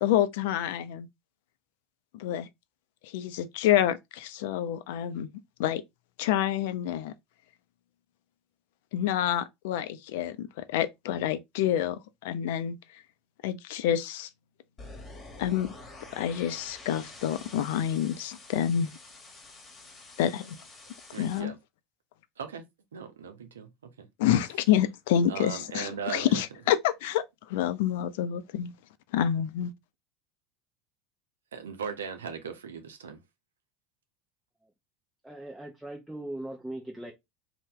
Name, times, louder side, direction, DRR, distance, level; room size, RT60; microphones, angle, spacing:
voice 1, 0.0-1.1 2.1-2.5 3.1-5.3 5.6-5.8 6.2-7.1 8.9-12.8 13.4-14.3 15.4-15.7 16.1-18.9 20.2-20.6 21.2-21.5 24.2-27.2 27.5-28.7 29.1-29.7, left 10 dB, 70° left, 0.3 m, -28 dB
sound 1, 14.8-21.4, left 2 dB, 30° left, 1.2 m, -48 dB
voice 2, 21.1-21.6 22.4-22.6 22.9-24.1 25.3-26.4 31.5-33.2, right 6 dB, 85° right, 0.5 m, -38 dB
voice 3, 35.2-37.1, right 1 dB, 5° right, 0.7 m, -39 dB
2.7 x 2.1 x 3.5 m
hypercardioid pair, 80°, 0 cm